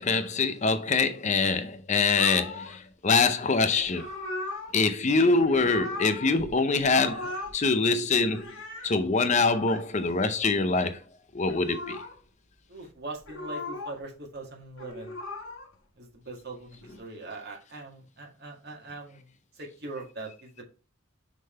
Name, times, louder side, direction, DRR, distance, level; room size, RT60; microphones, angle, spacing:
voice 1, 0.0-4.1 4.7-8.5 8.8-11.0 11.3-12.0, left 4 dB, 35° left, 0.5 m, -24 dB
sound 1, 2.2-2.8 3.8-4.8 5.4-6.5 6.8-7.6 8.0-8.9 9.5-9.8 11.4-12.2 13.2-14.0 14.6-15.7 16.6-17.0, left 2 dB, 70° left, 1.7 m, -38 dB
voice 2, 12.7-15.2 16.0-19.3 19.6-20.6, right 2 dB, 50° right, 2.0 m, -41 dB
6.4 x 3.7 x 4.4 m
head